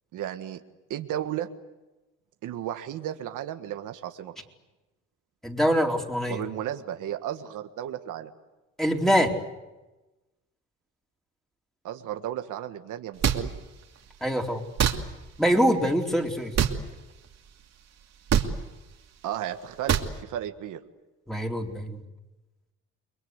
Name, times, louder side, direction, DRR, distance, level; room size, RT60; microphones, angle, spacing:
voice 1, 0.1-0.6 0.9-1.5 2.4-4.3 6.3-8.3 11.8-13.5 19.2-20.8, right 11 dB, 85° right, 7 dB, 1.7 m, -34 dB
voice 2, 5.4-6.4 8.8-9.3 14.2-14.6 15.4-16.5 21.3-22.0, equal, ahead, 1 dB, 4.3 m, -24 dB
sound 1, 13.2-13.4 14.8-15.0 16.5-16.8 18.3-18.5 19.9-20.1, right 8 dB, 60° right, 2.7 m, -22 dB
30.0 x 22.0 x 8.2 m, 1.1 s
cardioid pair, 90°, 30 cm